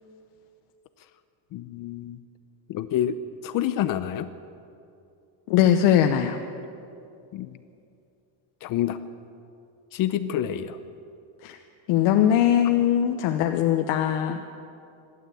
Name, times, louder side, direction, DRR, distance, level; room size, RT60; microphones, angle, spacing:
voice 1, 1.5-2.2 2.7-3.2 3.4-4.3 7.3-7.5 8.6-9.0 9.9-10.8, left 11 dB, 45° left, 11 dB, 0.7 m, -27 dB
voice 2, 5.5-6.4 10.2-10.3 11.4-11.6 11.9-14.4, left 10 dB, 60° left, 5 dB, 1.1 m, -21 dB
26.0 x 12.0 x 8.4 m, 2.6 s
cardioid pair, 170°, 49 cm